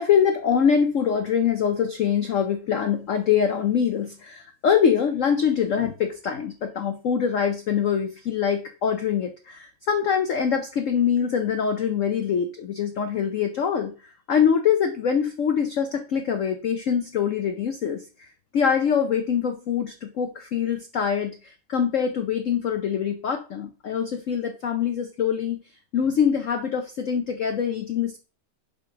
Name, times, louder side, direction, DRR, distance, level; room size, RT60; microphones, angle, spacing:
voice 1, 0.0-18.0 18.5-25.6 25.9-28.2, left 7 dB, 90° left, 7 dB, 0.6 m, -24 dB
7.7 x 3.6 x 5.7 m, 0.36 s
omnidirectional pair, 2.2 m